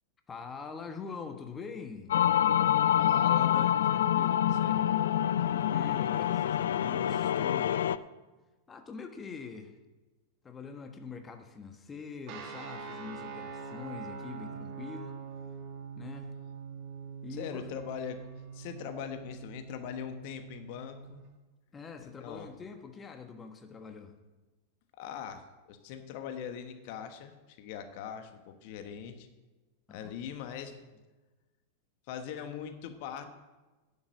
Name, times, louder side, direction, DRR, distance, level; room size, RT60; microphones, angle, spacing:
voice 1, 0.3-2.1 5.3-7.9 8.7-9.7 10.4-15.2 16.0-16.3 17.2-17.7 21.7-24.1 29.9-30.1, left 5 dB, 20° left, 6 dB, 1.3 m, -44 dB
sound 1, 2.1-8.0, left 10 dB, 70° left, 0.4 m, -26 dB
voice 2, 3.0-4.8 17.3-18.2 18.5-21.2 22.0-22.5 25.0-29.3 29.9-30.8 32.1-33.3, left 8 dB, 50° left, 8 dB, 1.2 m, -41 dB
sound 2, 12.3-21.2, right 6 dB, 45° right, 2.2 m, -44 dB
10.0 x 7.4 x 7.9 m, 1.2 s
figure-of-eight pair, 95°, 0 cm